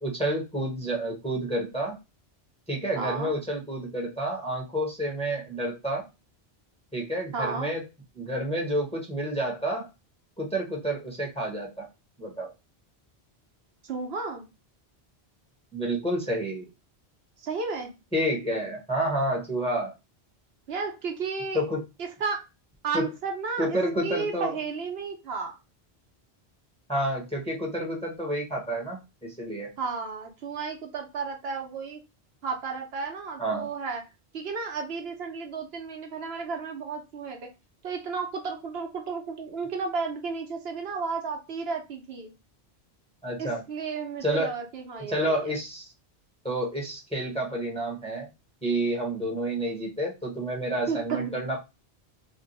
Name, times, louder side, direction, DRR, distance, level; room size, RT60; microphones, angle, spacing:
voice 1, 0.0-2.0 2.7-6.1 6.9-7.8 8.1-9.9 10.4-11.9 12.2-12.5 15.7-16.7 18.1-19.9 21.5-21.8 22.9-23.1 23.6-24.5 26.9-29.7 33.4-33.7 43.2-43.6 44.2-44.5 45.1-45.9 46.4-48.3 48.6-51.6, right 1 dB, 5° left, 0 dB, 0.7 m, -29 dB
voice 2, 2.9-3.3 7.3-7.7 13.9-14.4 17.4-17.9 20.7-21.6 22.2-22.4 22.8-23.7 24.0-25.6 29.8-32.0 32.4-34.0 34.3-37.4 37.8-42.3 43.4-45.6 50.9-51.5, right 5 dB, 75° right, 2 dB, 1.0 m, -33 dB
2.5 x 2.2 x 3.9 m, 0.26 s
omnidirectional pair, 1.1 m